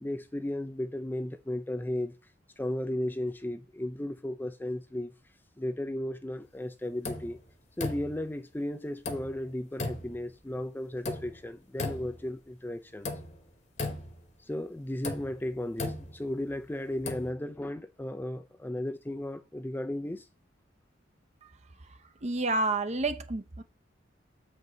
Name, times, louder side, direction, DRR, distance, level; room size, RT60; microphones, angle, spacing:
voice 1, 0.0-2.2 2.6-5.1 5.6-7.4 7.8-13.1 14.5-20.3, left 1 dB, 10° left, 0.4 m, -35 dB
sound 1, 7.0-7.4 7.8-8.3 9.0-9.4 9.8-10.2 11.0-11.4 11.8-12.3 13.0-13.4 13.8-14.3 15.0-16.5 16.9-17.3, left 2 dB, 35° left, 1.2 m, -37 dB
voice 2, 22.2-23.6, right 2 dB, 35° right, 0.7 m, -29 dB
7.4 x 5.3 x 3.9 m
head